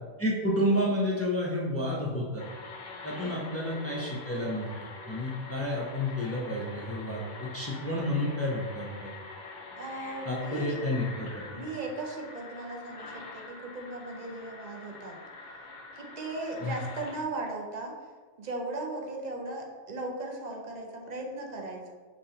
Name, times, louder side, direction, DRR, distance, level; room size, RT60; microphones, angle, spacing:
voice 1, 0.2-2.4 3.0-4.7 5.1-9.1 10.3-11.6 16.6-16.7, left 1 dB, 20° left, -4 dB, 0.5 m, -30 dB
sound 1, 2.4-17.2, left 3 dB, 65° left, 0.8 m, -45 dB
voice 2, 9.8-10.8 11.5-15.2 16.0-17.9 18.4-21.9, right 2 dB, 45° right, 0 dB, 0.7 m, -37 dB
5.2 x 3.2 x 2.8 m, 1.5 s
omnidirectional pair, 1.2 m